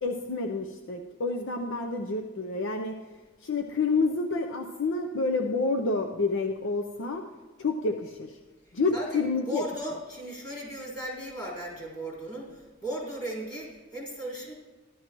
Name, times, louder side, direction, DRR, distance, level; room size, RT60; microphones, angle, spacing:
voice 1, 0.0-3.0 3.4-7.2 7.6-8.4 8.7-9.6, left 3 dB, 65° left, 4 dB, 0.6 m, -29 dB
voice 2, 8.7-14.5, right 1 dB, 20° left, -5 dB, 3.8 m, -37 dB
14.0 x 12.0 x 3.0 m, 1.2 s
head